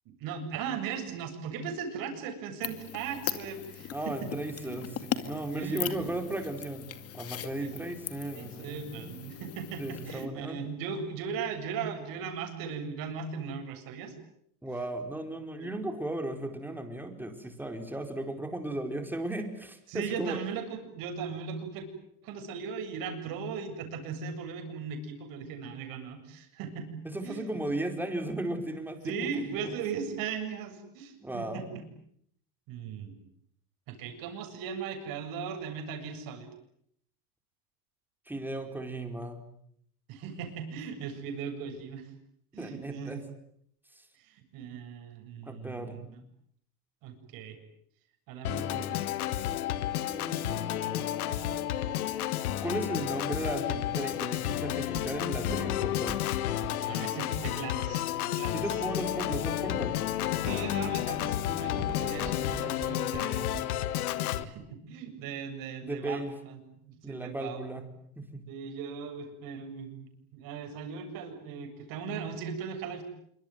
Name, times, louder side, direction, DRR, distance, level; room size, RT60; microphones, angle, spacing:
voice 1, 0.1-4.3 4.6-4.8 5.5-6.1 7.6-7.7 8.3-14.1 15.6-15.8 19.9-21.9 22.2-27.5 29.0-31.8 32.7-33.2 33.9-36.5 40.1-42.1 42.5-43.2 44.2-46.1 47.0-47.6 48.3-49.0 49.4-49.5 56.9-58.6 60.4-63.5 64.4-67.6 68.5-73.0, right 6 dB, 50° right, 6 dB, 7.7 m, -38 dB
sound 1, 2.6-10.3, left 10 dB, 35° left, 2.3 m, -39 dB
voice 2, 3.9-6.9 7.1-9.2 9.8-10.6 14.6-20.4 27.0-29.7 31.2-31.7 38.3-39.4 42.5-43.2 43.9-44.0 45.5-46.0 50.1-51.7 52.6-56.2 58.5-60.0 64.1-64.5 65.8-66.4 67.0-67.9 68.2-68.5, right 1 dB, 5° right, 5 dB, 4.6 m, -36 dB
Organ, 48.4-64.4, left 12 dB, 85° left, 1.7 m, -31 dB
Walk footsteps, 53.8-58.8 59.4-59.9 60.4-60.7 61.1-63.9 64.3-64.4, right 6 dB, 20° right, 3.7 m, -44 dB
26.5 x 24.0 x 9.3 m, 0.70 s
supercardioid pair, 125°, 43 cm